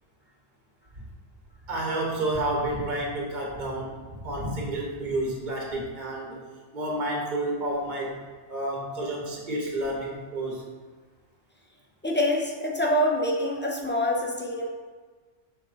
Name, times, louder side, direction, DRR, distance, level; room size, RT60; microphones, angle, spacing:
voice 1, 1.7-3.9 4.2-6.4 6.7-8.2 8.5-10.6, right 1 dB, 40° right, -2 dB, 1.2 m, -30 dB
voice 2, 12.0-14.7, left 1 dB, 20° left, -1 dB, 0.3 m, -25 dB
6.4 x 4.2 x 4.1 m, 1.5 s
omnidirectional pair, 1.4 m